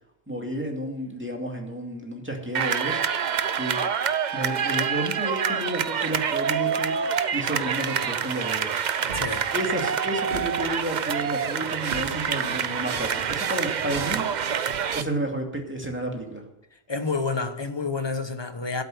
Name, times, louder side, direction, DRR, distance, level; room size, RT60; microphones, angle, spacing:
voice 1, 0.3-3.3 3.6-3.8 4.3-7.0 7.3-8.8 9.5-14.2 14.9-16.4, right 1 dB, 10° right, 2.4 m, -31 dB
sound 1, 2.5-15.0, right 7 dB, 50° right, 0.7 m, -27 dB
voice 2, 9.1-9.5 16.9-18.8, left 4 dB, 25° left, 1.0 m, -29 dB
sound 2, 9.1-9.9 10.3-11.1 11.5-11.6 11.9-12.7 13.9-14.6, right 3 dB, 75° right, 2.0 m, -41 dB
13.0 x 8.1 x 7.8 m
omnidirectional pair, 1.1 m